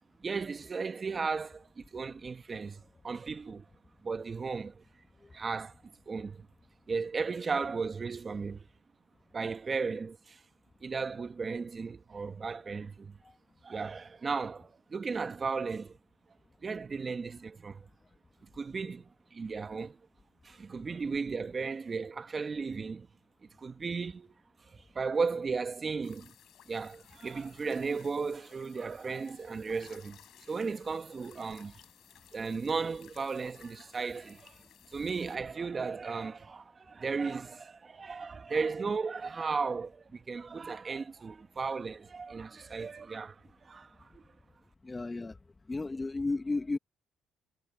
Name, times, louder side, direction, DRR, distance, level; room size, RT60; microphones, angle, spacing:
voice 1, 0.2-3.6 4.0-4.8 5.3-6.5 6.9-8.7 9.3-10.4 10.8-13.2 13.6-16.0 16.6-17.9 18.4-20.0 20.4-23.1 23.4-24.3 24.6-26.3 26.7-31.8 32.3-44.3, right 4 dB, 35° right, 1.3 m, -35 dB
sound 1, 26.0-35.4, left 11 dB, 70° left, 5.3 m, -59 dB
voice 2, 44.8-45.3 45.7-46.8, left 3 dB, 20° left, 1.5 m, -33 dB
cardioid pair, 85°, 0 cm